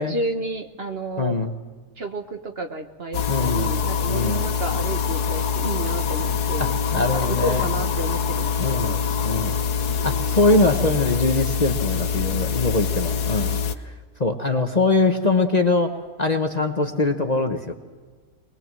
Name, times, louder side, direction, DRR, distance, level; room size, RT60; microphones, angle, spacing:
voice 1, 0.0-1.4 2.0-9.0 10.0-10.4, right 2 dB, 45° right, 5 dB, 1.3 m, -31 dB
voice 2, 1.2-1.5 3.3-3.8 4.1-4.5 6.6-7.7 8.6-8.9 9.2-9.5 10.0-13.6 13.8-13.9 14.2-15.9 16.2-17.7, left 3 dB, 30° left, 4 dB, 1.1 m, -22 dB
sound 1, 3.1-13.8, left 6 dB, 85° left, 1.5 m, -24 dB
23.5 x 21.0 x 7.6 m, 1.4 s
omnidirectional pair, 1.6 m